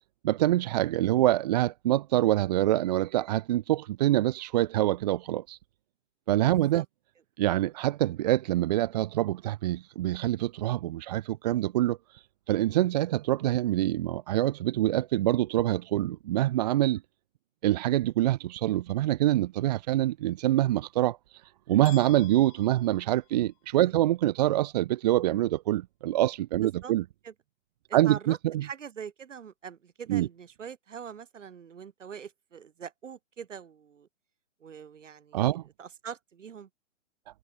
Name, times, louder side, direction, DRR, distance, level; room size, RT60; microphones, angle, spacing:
voice 1, 0.2-5.6 6.3-6.8 7.4-12.0 12.5-17.0 17.6-21.2 21.7-27.0 27.9-28.6 30.1-30.3 35.3-35.6, right 14 dB, 30° right, 1.5 m, -25 dB
voice 2, 6.5-6.8 26.6-26.9 27.2-27.3 27.9-34.1 34.6-36.7, right 7 dB, 65° right, 4.1 m, -43 dB
sound 1, 21.8-23.8, left 33 dB, 25° left, 5.6 m, -50 dB
hypercardioid pair, 155°, 40 cm